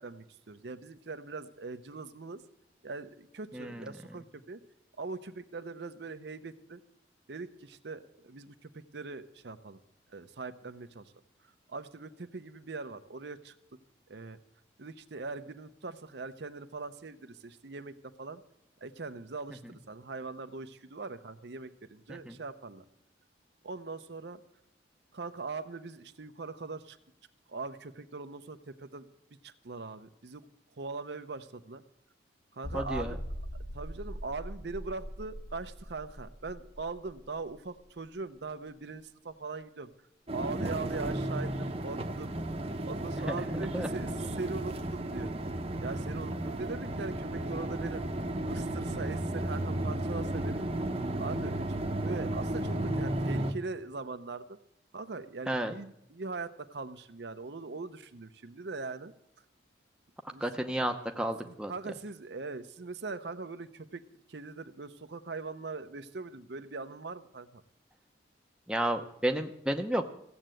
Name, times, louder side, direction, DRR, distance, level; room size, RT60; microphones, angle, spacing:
voice 1, 0.0-2.4 2.8-4.6 5.0-6.8 7.3-9.8 10.1-11.1 11.7-13.5 14.1-14.4 14.8-18.4 18.8-22.8 23.6-24.4 25.1-27.0 27.5-29.1 29.4-30.5 30.8-31.8 32.5-33.2 33.7-39.9 40.3-42.3 42.8-45.3 45.8-48.0 48.4-50.7 51.2-54.6 54.9-59.1 60.3-60.4 61.4-64.0 64.3-67.6, right 3 dB, 60° right, 9 dB, 0.7 m, -41 dB
voice 2, 3.5-3.9 22.2-22.4 32.7-33.2 43.3-43.4 43.7-43.9 55.5-55.7 60.4-61.7 68.7-70.1, right 1 dB, 5° right, 4 dB, 0.7 m, -32 dB
sound 1, 32.6-38.1 38.4-38.5 39.0-39.1, equal, 75° left, 1.3 m, -42 dB
sound 2, 40.3-53.5, right 1 dB, 30° right, 0.9 m, -33 dB
15.5 x 7.9 x 7.6 m, 0.77 s
head